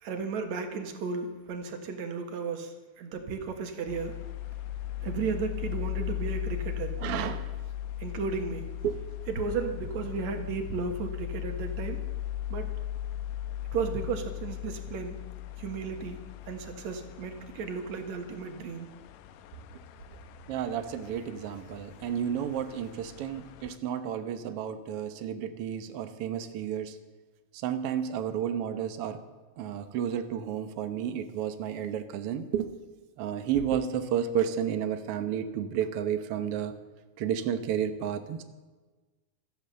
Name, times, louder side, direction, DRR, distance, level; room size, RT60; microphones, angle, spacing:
voice 1, 0.0-4.2 5.0-7.0 8.0-8.7 9.3-12.0 12.5-12.7 13.7-15.2 15.6-16.2 16.5-18.9, right 5 dB, 60° right, 6 dB, 2.5 m, -34 dB
sound 1, 3.9-23.8, left 12 dB, 80° left, 1.6 m, -38 dB
voice 2, 7.0-7.5 8.8-9.0 10.1-10.2 20.5-27.0 27.5-29.2 29.6-32.8 33.2-36.7 37.2-38.4, right 9 dB, 85° right, 9 dB, 1.3 m, -31 dB
16.0 x 13.5 x 6.8 m, 1.3 s
omnidirectional pair, 4.2 m